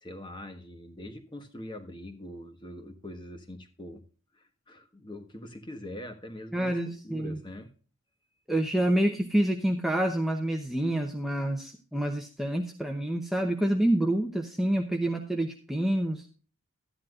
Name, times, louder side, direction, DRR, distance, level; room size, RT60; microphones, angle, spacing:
voice 1, 0.0-4.0 4.3-7.7, left 1 dB, 20° left, 7 dB, 1.3 m, -43 dB
voice 2, 6.5-7.4 8.5-16.3, right 1 dB, ahead, 2 dB, 0.8 m, -27 dB
13.5 x 10.5 x 2.5 m, 0.37 s
head